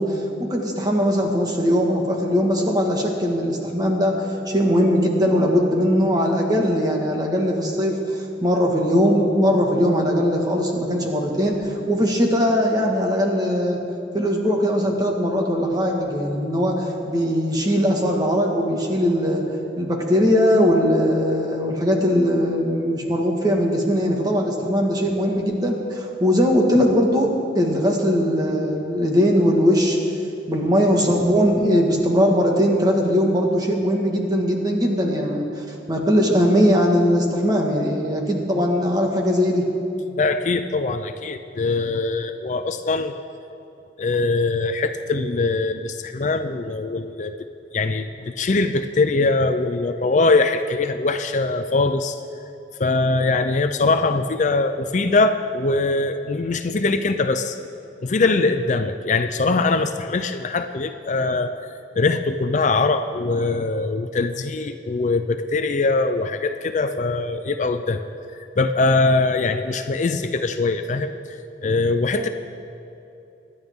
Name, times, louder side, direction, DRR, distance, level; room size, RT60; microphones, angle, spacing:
voice 1, 0.0-13.8 14.1-19.4 19.8-27.3 27.5-30.0 30.5-39.7 72.2-72.3, equal, 20° right, 0 dB, 1.7 m, -20 dB
voice 2, 40.2-43.1 44.0-47.3 47.7-52.2 52.8-57.6 58.0-61.5 62.0-68.0 68.6-72.3, left 3 dB, 40° left, 8 dB, 0.4 m, -22 dB
25.0 x 11.0 x 3.7 m, 2.8 s
head